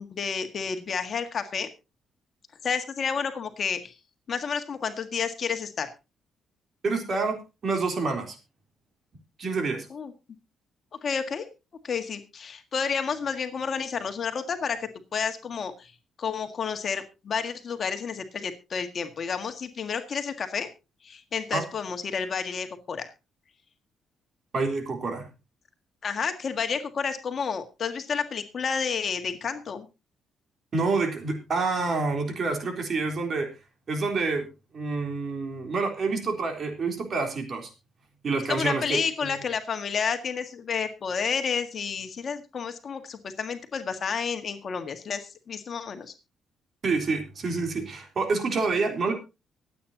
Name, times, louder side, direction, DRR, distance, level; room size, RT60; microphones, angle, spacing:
voice 1, 0.0-1.7 2.6-3.9 4.3-5.9 9.9-10.1 11.0-11.5 11.8-15.9 16.2-20.7 21.0-23.1 26.0-29.9 38.5-46.1, left 6 dB, 50° left, 7 dB, 1.8 m, -30 dB
voice 2, 6.8-7.4 7.6-8.4 9.4-9.9 21.5-21.6 24.5-25.3 30.7-33.5 33.9-34.5 34.7-37.7 38.2-39.3 46.8-49.1, right 3 dB, 50° right, 4 dB, 3.5 m, -27 dB
24.0 x 8.7 x 2.8 m, 0.28 s
cardioid pair, 90°, 0 cm